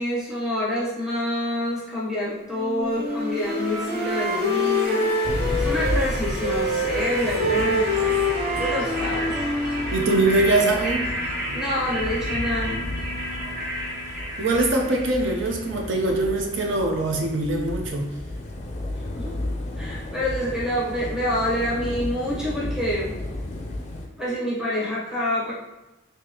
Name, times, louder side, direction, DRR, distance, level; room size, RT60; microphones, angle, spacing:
voice 1, 0.0-5.1 5.6-8.2 8.6-9.3 11.5-12.8 19.0-23.2 24.2-25.5, left 1 dB, 5° right, -8 dB, 0.8 m, -27 dB
Wind instrument woodwind instrument, 2.5-6.1 6.4-10.4, left 1 dB, 35° right, 0.5 m, -26 dB
sound 1, 2.9-15.8, equal, 50° right, 0.9 m, -32 dB
sound 2, 5.2-24.1, left 1 dB, 35° left, 0.4 m, -33 dB
voice 2, 9.9-11.1 11.5-11.6 14.4-18.1, right 2 dB, 70° right, 2 dB, 0.6 m, -22 dB
3.8 x 2.8 x 2.9 m, 1.0 s
head